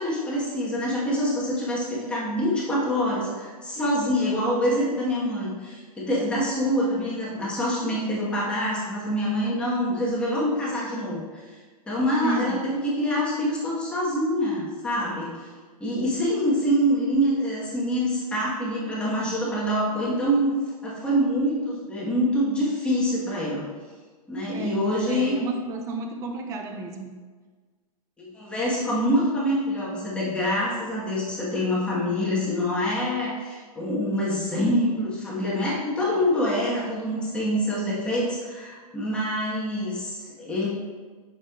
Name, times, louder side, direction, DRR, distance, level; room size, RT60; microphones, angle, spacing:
voice 1, 0.0-11.6 11.9-15.5 15.8-20.6 20.8-23.6 24.3-25.4 28.2-40.7, equal, 5° left, -7 dB, 1.4 m, -25 dB
voice 2, 12.2-12.6 24.5-27.1, right 3 dB, 15° right, 3 dB, 0.6 m, -32 dB
8.5 x 6.5 x 2.5 m, 1.4 s
hypercardioid pair, 165°, 19 cm